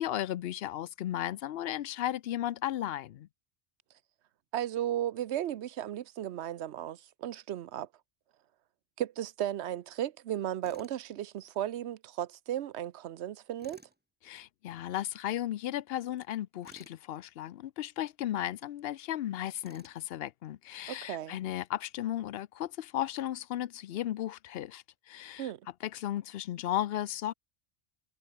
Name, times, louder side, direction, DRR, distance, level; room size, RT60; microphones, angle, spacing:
voice 1, 0.0-3.3 14.2-25.5 25.8-27.3, left 12 dB, 65° left, 0.7 m, -35 dB
voice 2, 4.5-7.9 9.0-13.8 20.9-21.4 25.4-25.6, right 11 dB, 75° right, 1.0 m, -35 dB
Tools, 10.6-11.0 13.6-14.0 16.6-17.0 19.6-20.0, right 1 dB, 10° right, 2.7 m, -55 dB
omnidirectional pair, 1.1 m